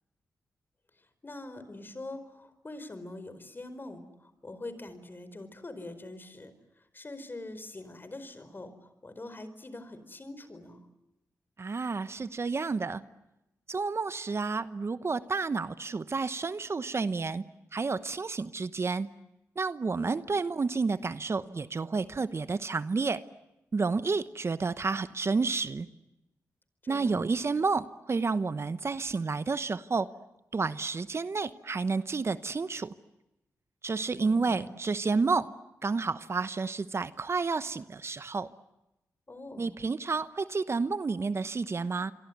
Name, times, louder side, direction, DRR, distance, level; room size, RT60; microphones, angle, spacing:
voice 1, 1.2-6.5 6.9-10.8 20.0-20.2 26.8-27.3 34.2-34.7 39.3-39.7, left 2 dB, 35° left, 12 dB, 4.7 m, -44 dB
voice 2, 11.6-13.0 13.7-17.4 17.7-19.1 19.6-23.2 23.7-25.9 26.9-30.1 30.5-32.9 33.8-35.5 35.8-38.5 39.6-42.1, right 4 dB, 45° right, 14 dB, 1.0 m, -30 dB
27.0 x 23.5 x 9.4 m, 0.94 s
cardioid pair, 50°, 6 cm